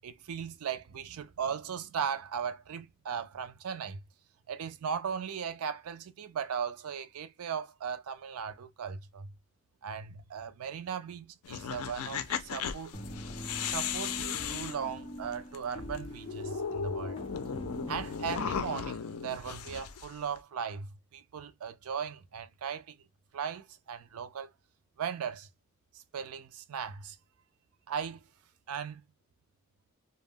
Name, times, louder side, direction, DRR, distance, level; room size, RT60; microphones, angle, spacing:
voice 1, 0.0-4.0 4.5-9.3 9.8-13.0 13.6-17.2 17.9-23.0 23.3-24.5 25.0-25.5 25.9-27.2 27.9-28.3 28.7-29.0, right 7 dB, 80° right, 0.4 m, -37 dB
sound 1, 11.4-15.6 15.9-16.0 16.3-20.4, left 7 dB, 75° left, 0.4 m, -36 dB
sound 2, 12.9-18.6, left 1 dB, 25° left, 0.5 m, -43 dB
2.2 x 2.1 x 3.4 m
head